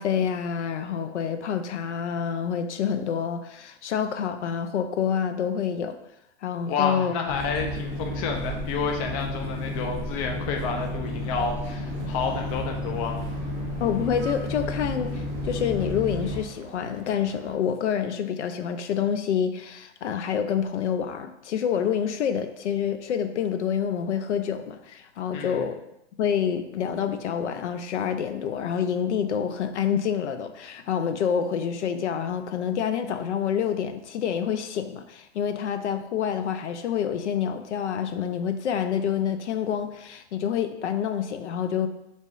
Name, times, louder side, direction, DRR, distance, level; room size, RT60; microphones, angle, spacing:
voice 1, 0.0-6.0 6.4-7.1 13.8-25.8 26.2-41.9, left 8 dB, 85° left, 9 dB, 0.6 m, -27 dB
voice 2, 6.7-13.3 25.3-25.7, left 5 dB, 30° left, 2 dB, 0.5 m, -30 dB
sound 1, 7.3-16.4, left 1 dB, 10° left, 1.4 m, -32 dB
sound 2, 11.8-17.6, right 3 dB, 30° right, 0.9 m, -46 dB
4.5 x 2.8 x 3.1 m, 0.84 s
hypercardioid pair, 135°, 34 cm